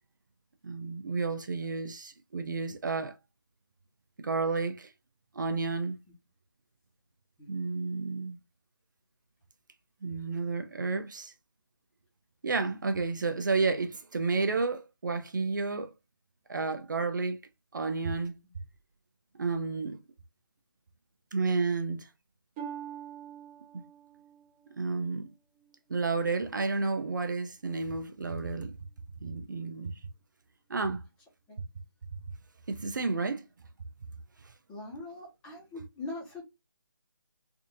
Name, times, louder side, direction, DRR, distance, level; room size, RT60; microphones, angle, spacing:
voice 1, 0.6-3.2 4.2-4.9 5.3-6.0 7.5-8.4 10.0-11.3 12.4-15.9 16.5-17.4 17.7-18.4 19.4-20.0 21.3-22.1 23.7-23.8 24.8-25.3 25.9-28.8 29.2-30.0 30.7-31.0 32.7-33.5, right 4 dB, 55° right, 0.6 m, -31 dB
Harp, 22.6-26.3 26.8-27.3 27.9-28.0, right 9 dB, 10° right, 0.5 m, -46 dB
voice 2, 34.7-36.4, left 2 dB, 10° left, 1.0 m, -41 dB
3.6 x 2.6 x 2.6 m
figure-of-eight pair, 165°, 12 cm